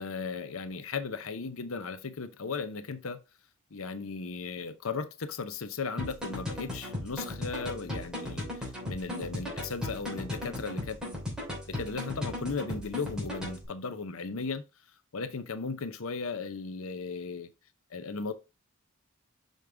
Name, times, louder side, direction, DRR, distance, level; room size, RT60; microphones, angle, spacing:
voice 1, 0.0-3.2 3.7-11.0 11.7-14.6 15.1-17.5 17.9-18.3, left 4 dB, 80° left, 0.7 m, -36 dB
sound 1, 6.0-13.6, left 1 dB, 5° right, 3.1 m, -37 dB
6.4 x 5.2 x 3.4 m
head